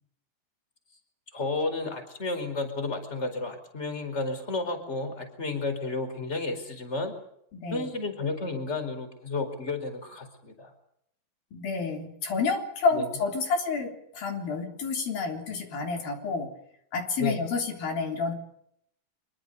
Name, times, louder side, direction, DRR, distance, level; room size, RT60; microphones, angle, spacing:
voice 1, 1.3-7.1 7.7-10.7 12.9-13.1 17.2-17.4, left 3 dB, 20° left, 7 dB, 4.8 m, -32 dB
voice 2, 7.5-7.9 11.5-16.5 16.9-18.3, left 4 dB, 85° left, 4 dB, 5.4 m, -29 dB
25.5 x 23.0 x 6.7 m, 0.73 s
omnidirectional pair, 4.0 m